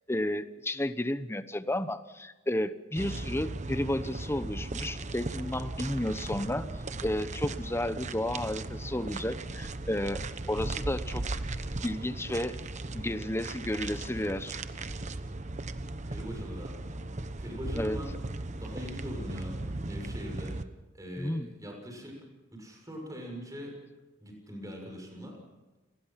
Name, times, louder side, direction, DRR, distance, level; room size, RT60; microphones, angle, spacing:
voice 1, 0.1-6.7 7.0-10.2 10.5-11.2 11.8-12.6 12.9-14.6 17.8-18.0 21.2-21.5, left 1 dB, 15° left, 12 dB, 0.9 m, -32 dB
sound 1, 3.0-20.6, right 2 dB, 40° right, 1.0 m, -37 dB
voice 2, 16.0-17.1 17.4-18.1 18.6-20.6 20.9-22.1 22.5-23.8 24.2-25.4, equal, 20° right, 1 dB, 6.8 m, -42 dB
29.5 x 20.0 x 5.9 m, 1.1 s
head